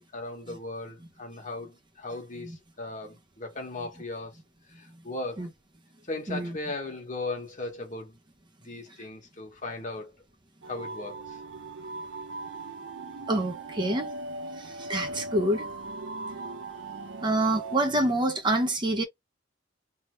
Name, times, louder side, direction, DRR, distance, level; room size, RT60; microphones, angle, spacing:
voice 1, 0.0-4.3 4.8-5.5 6.1-8.1 8.6-10.2 10.7-11.4 17.8-18.2, left 2 dB, 40° left, 1.5 m, -37 dB
sound 1, 10.6-17.8, right 2 dB, 85° right, 0.8 m, -39 dB
voice 2, 13.3-14.1 14.6-15.7 17.2-19.0, right 1 dB, 25° right, 0.8 m, -27 dB
3.5 x 2.8 x 3.1 m
head